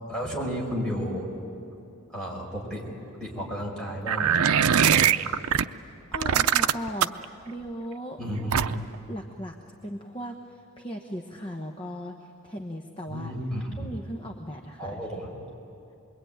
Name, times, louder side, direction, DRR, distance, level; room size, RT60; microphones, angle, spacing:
voice 1, 0.1-1.3 2.1-2.9 3.1-5.2 8.2-8.7 13.1-13.9 14.8-15.3, equal, 5° left, -4 dB, 5.4 m, -33 dB
sound 1, 4.1-5.6 6.1-7.2 8.5-8.9, right 8 dB, 85° right, 0.6 m, -21 dB
voice 2, 5.8-8.2 9.1-9.6 9.8-13.3 13.8-15.2, equal, 25° left, 3 dB, 1.0 m, -38 dB
27.0 x 22.0 x 9.3 m, 2.7 s
head